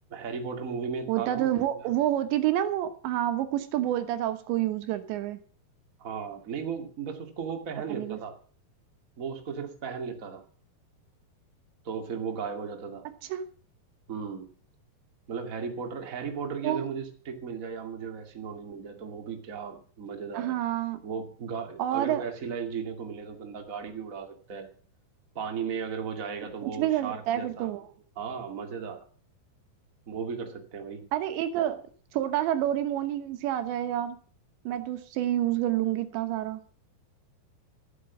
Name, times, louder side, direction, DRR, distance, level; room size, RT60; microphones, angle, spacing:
voice 1, 0.1-1.9 6.0-8.4 9.2-10.4 11.8-13.1 14.1-14.5 15.3-20.6 21.0-24.7 25.3-27.7 28.1-29.0 30.1-31.0, right 6 dB, 30° right, 5 dB, 1.5 m, -36 dB
voice 2, 1.1-5.4 7.9-8.2 13.3-13.5 16.6-16.9 20.3-21.0 21.8-22.2 26.6-27.9 31.1-31.8 32.1-34.2 34.7-36.6, right 12 dB, 85° right, 9 dB, 3.4 m, -28 dB
14.0 x 8.1 x 7.2 m, 0.43 s
omnidirectional pair, 5.0 m